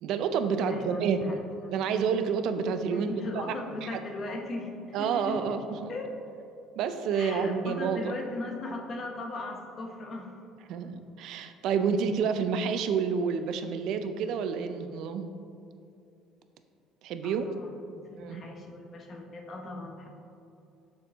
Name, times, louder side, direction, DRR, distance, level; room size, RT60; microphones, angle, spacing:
voice 1, 0.0-1.4 1.7-3.1 3.5-3.6 3.8-3.9 4.9-5.9 6.8-8.1 10.7-15.3 17.0-17.6 18.2-18.4, right 6 dB, 65° right, 9 dB, 0.4 m, -29 dB
voice 2, 0.7-1.8 2.9-5.6 5.9-6.1 7.1-10.3 17.2-20.1, left 2 dB, 40° left, 2 dB, 0.8 m, -38 dB
6.4 x 4.5 x 3.5 m, 2.6 s
cardioid pair, 115°, 0 cm